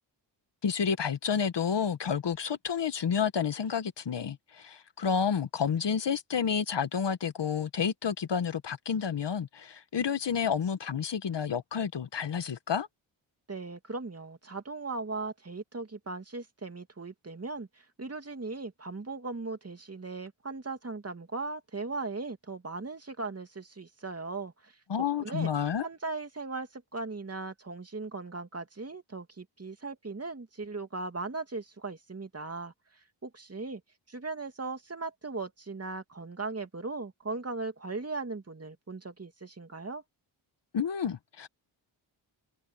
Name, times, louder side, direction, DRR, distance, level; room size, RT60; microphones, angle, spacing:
voice 1, 0.6-12.9 24.9-25.9 40.7-41.5, left 7 dB, 55° left, 1.5 m, -30 dB
voice 2, 13.5-24.8 25.2-25.5 25.8-33.8 34.1-40.0, right 3 dB, 30° right, 2.6 m, -38 dB
cardioid pair, 70°, 49 cm